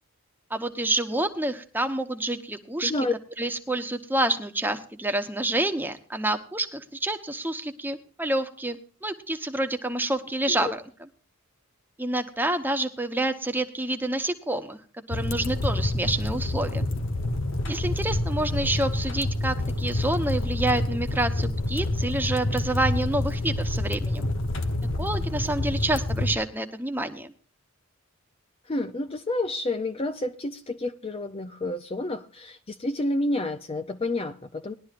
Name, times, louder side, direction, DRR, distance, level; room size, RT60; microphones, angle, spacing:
voice 1, 0.5-2.9 3.4-10.8 12.0-14.8 15.1-16.8 17.6-24.3 25.0-27.3, right 1 dB, 10° right, 7 dB, 0.9 m, -28 dB
voice 2, 2.8-3.1 10.5-10.7 28.7-34.7, left 2 dB, 25° left, 8 dB, 0.5 m, -29 dB
sound 1, 15.1-26.3, left 1 dB, 60° left, 1.0 m, -28 dB
20.0 x 11.5 x 2.5 m, 0.40 s
head